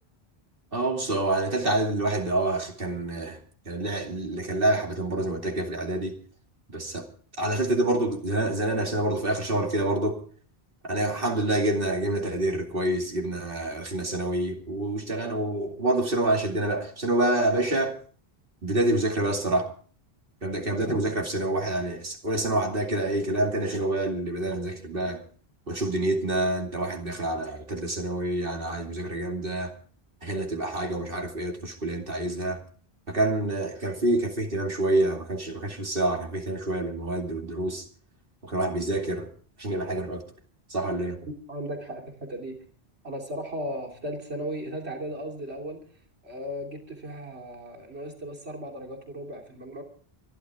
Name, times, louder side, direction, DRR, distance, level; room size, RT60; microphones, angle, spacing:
voice 1, 0.7-3.4 3.7-6.1 6.7-7.1 7.4-10.2 10.8-18.0 18.6-19.7 20.4-25.2 25.7-29.7 30.2-32.6 33.1-37.8 38.4-39.3 39.6-40.2 40.7-41.2, right 1 dB, 60° right, 2.7 m, -27 dB
voice 2, 41.5-42.6 43.0-45.8 46.2-49.8, equal, 85° right, 3.3 m, -36 dB
25.0 x 12.5 x 3.6 m
omnidirectional pair, 1.1 m